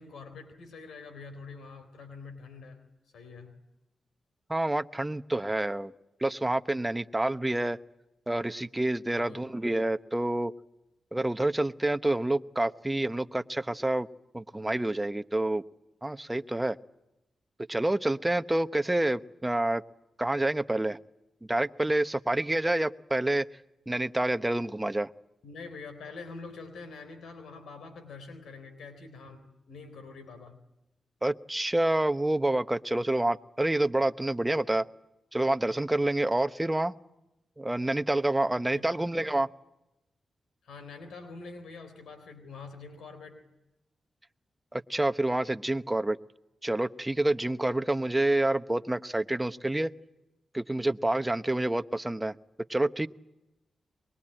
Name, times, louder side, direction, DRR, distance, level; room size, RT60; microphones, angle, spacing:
voice 1, 0.0-2.8 3.1-3.5 9.1-9.5 25.4-30.6 38.6-39.0 40.6-43.4, left 4 dB, 90° left, 9 dB, 3.8 m, -45 dB
voice 2, 4.5-5.9 6.2-7.8 8.3-10.5 11.1-14.1 14.3-15.6 16.0-16.8 17.7-19.8 20.2-21.0 21.5-23.5 23.9-25.1 31.2-34.9 35.3-36.9 37.6-39.5 44.7-46.2 46.6-49.9 50.5-52.3 52.7-53.1, right 1 dB, 15° right, 11 dB, 1.0 m, -28 dB
24.0 x 22.5 x 8.9 m, 0.95 s
cardioid pair, 65°, 0 cm